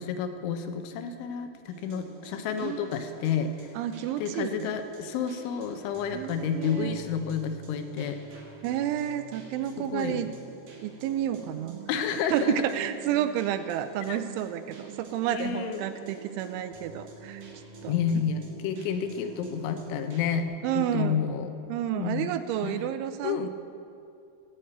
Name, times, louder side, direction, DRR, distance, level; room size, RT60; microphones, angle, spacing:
voice 1, 0.0-3.7 4.2-8.2 9.8-10.2 11.9-12.5 14.1-14.2 15.3-15.9 17.9-21.5 21.9-22.3 22.6-22.9 23.2-23.5, left 7 dB, 80° left, 8 dB, 3.2 m, -30 dB
sound 1, 1.7-20.4, right 4 dB, 55° right, 3.2 m, -47 dB
voice 2, 2.6-3.0 3.8-4.8 6.1-7.0 8.6-10.3 10.8-11.8 12.3-17.4 17.8-17.9 20.6-21.2 21.7-23.5, right 11 dB, 85° right, 10 dB, 3.0 m, -30 dB
16.0 x 6.7 x 8.9 m, 2.5 s
omnidirectional pair, 5.5 m